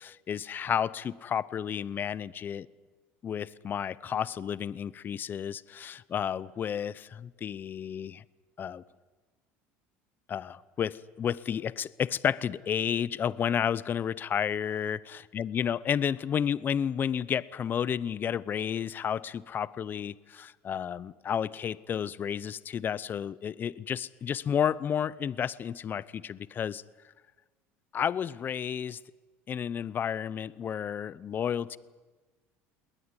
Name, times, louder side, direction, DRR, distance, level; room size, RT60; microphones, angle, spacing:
voice 1, 0.0-2.7 3.2-8.2 8.6-8.8 10.3-26.8 27.9-29.0 29.5-31.8, left 8 dB, 35° left, 20 dB, 0.8 m, -31 dB
20.5 x 19.5 x 9.7 m, 1.3 s
supercardioid pair, 110°, 6 cm